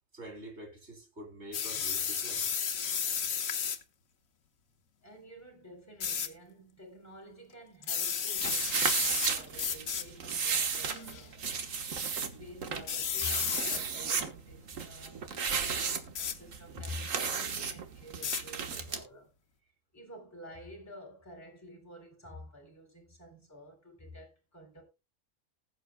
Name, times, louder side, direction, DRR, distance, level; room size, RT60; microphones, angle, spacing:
voice 1, 0.1-2.6, right 1 dB, 55° right, 3.6 m, -47 dB
sound 1, 1.5-3.8 6.0-6.3 7.8-9.3 9.6-10.0 10.9-11.2 12.9-13.8 16.1-16.4 18.2-18.4, left 7 dB, 85° left, 1.5 m, -32 dB
voice 2, 5.0-11.7 12.3-19.3 19.6-24.8, left 1 dB, 10° left, 3.9 m, -50 dB
sound 2, 8.4-19.0, right 6 dB, 75° right, 1.7 m, -34 dB
19.5 x 7.9 x 2.2 m
omnidirectional pair, 1.4 m